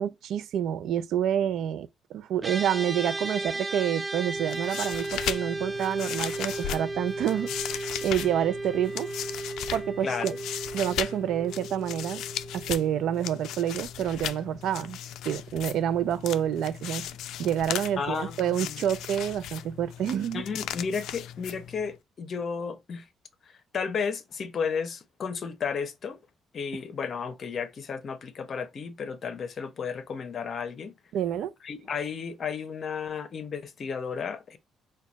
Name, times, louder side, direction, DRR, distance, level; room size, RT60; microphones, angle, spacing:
voice 1, 0.0-7.5 8.0-9.1 9.7-10.3 10.7-12.2 12.5-15.0 15.2-17.1 17.4-20.4 31.1-31.5, right 10 dB, 80° right, 0.5 m, -28 dB
sound 1, 2.4-13.9, right 2 dB, 25° right, 0.4 m, -35 dB
sound 2, 4.4-22.0, left 11 dB, 85° left, 0.3 m, -37 dB
voice 2, 10.0-10.4 18.0-18.8 20.3-23.1 23.7-26.2 26.5-30.9 31.6-34.6, left 6 dB, 50° left, 0.9 m, -33 dB
4.5 x 2.3 x 4.0 m
cardioid pair, 90°, 0 cm